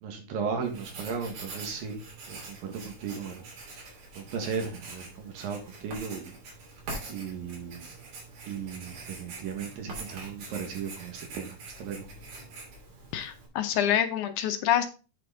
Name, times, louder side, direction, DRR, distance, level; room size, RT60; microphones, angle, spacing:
voice 1, 0.0-2.0 2.3-3.4 3.7-3.9 4.2-6.4 7.1-7.9 8.5-12.1, right 6 dB, 75° right, 4 dB, 3.3 m, -36 dB
Writing, 0.6-13.5, right 3 dB, 90° right, 5.1 m, -44 dB
voice 2, 13.1-14.9, left 10 dB, 75° left, 8 dB, 1.9 m, -26 dB
8.7 x 6.8 x 3.8 m, 0.32 s
omnidirectional pair, 4.2 m